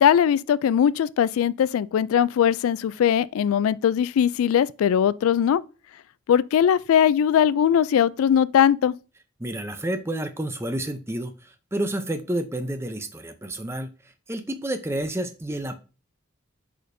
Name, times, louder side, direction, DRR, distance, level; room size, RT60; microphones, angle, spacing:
voice 1, 0.0-5.6 6.3-8.9, left 9 dB, 90° left, 0.3 m, -20 dB
voice 2, 9.4-15.7, right 1 dB, 10° right, 0.5 m, -30 dB
8.6 x 5.0 x 2.6 m
head